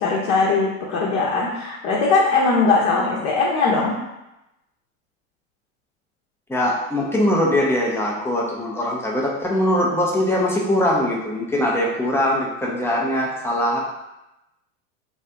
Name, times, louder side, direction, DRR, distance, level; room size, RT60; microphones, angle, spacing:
voice 1, 0.0-3.9, left 4 dB, 55° left, -4 dB, 0.8 m, -20 dB
voice 2, 6.5-13.8, left 1 dB, 5° left, -3 dB, 0.4 m, -21 dB
2.8 x 2.4 x 3.3 m, 0.93 s
hypercardioid pair, 95°, 41 cm